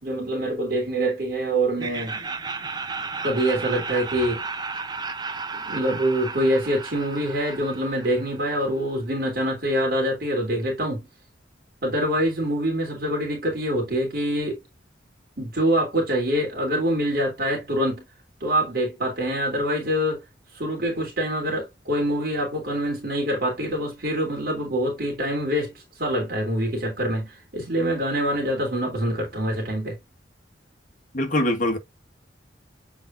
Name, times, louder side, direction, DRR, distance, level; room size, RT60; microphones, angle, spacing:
voice 1, 0.0-2.2 3.2-4.4 5.6-11.1 11.8-14.6 15.4-18.0 18.4-20.2 20.5-30.0, right 1 dB, 55° right, 3.0 m, -25 dB
Laughter, 1.8-8.7, right 4 dB, 25° right, 0.7 m, -34 dB
voice 2, 31.1-31.8, left 1 dB, 45° left, 1.8 m, -22 dB
7.6 x 4.7 x 2.6 m
head